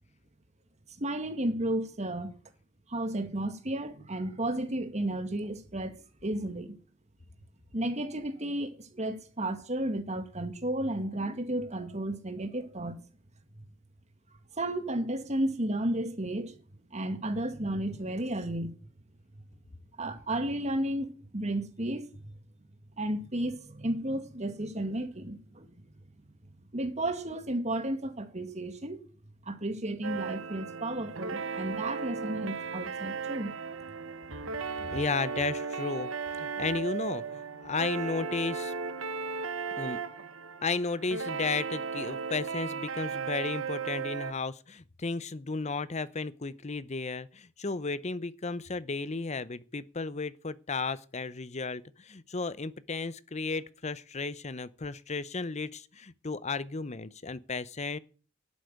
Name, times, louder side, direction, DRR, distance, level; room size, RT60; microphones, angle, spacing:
voice 1, 1.0-2.3 2.9-6.8 7.7-13.0 14.6-16.6 16.9-18.8 20.0-22.1 23.0-25.8 26.7-29.0 29.4-33.5, right 1 dB, 35° right, 2.0 m, -33 dB
sound 1, 30.0-44.3, right 5 dB, 80° right, 1.2 m, -36 dB
voice 2, 34.8-36.1 36.4-38.7 39.8-40.0 40.6-58.0, left 4 dB, 35° left, 0.8 m, -34 dB
12.0 x 8.3 x 9.4 m
head